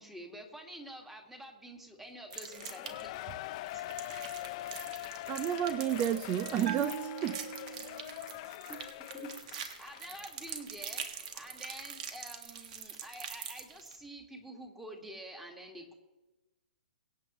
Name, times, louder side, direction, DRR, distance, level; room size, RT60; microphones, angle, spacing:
voice 1, 0.0-3.2 8.7-8.8 9.1-15.9, right 1 dB, 5° right, 2 dB, 2.0 m, -48 dB
Shout / Cheering, 2.3-10.6 11.0-11.1, left 15 dB, 40° left, 0.5 m, -43 dB
sound 1, 2.3-3.2 3.6-14.0, right 8 dB, 50° right, 1.8 m, -44 dB
voice 2, 4.9-7.5, right 11 dB, 25° right, 14 dB, 0.4 m, -32 dB
Bell, 6.6-8.3, right 6 dB, 65° right, 2.1 m, -41 dB
24.0 x 8.5 x 3.1 m, 1.1 s
hypercardioid pair, 140°, 5 cm